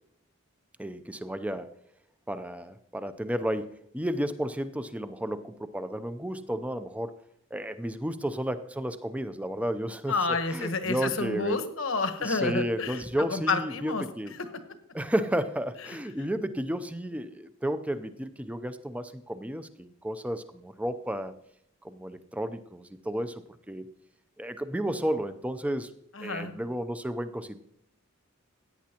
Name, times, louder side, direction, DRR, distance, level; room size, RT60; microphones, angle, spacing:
voice 1, 0.8-1.7 2.3-7.1 7.5-10.1 10.5-11.6 12.2-14.4 14.9-21.3 21.8-23.9 24.4-25.9 26.2-27.6, right 1 dB, 5° right, 10 dB, 0.5 m, -32 dB
voice 2, 10.1-14.0 14.4-14.5 15.9-16.0 26.1-26.5, left 4 dB, 70° left, 9 dB, 1.1 m, -30 dB
16.5 x 9.3 x 2.9 m, 0.76 s
head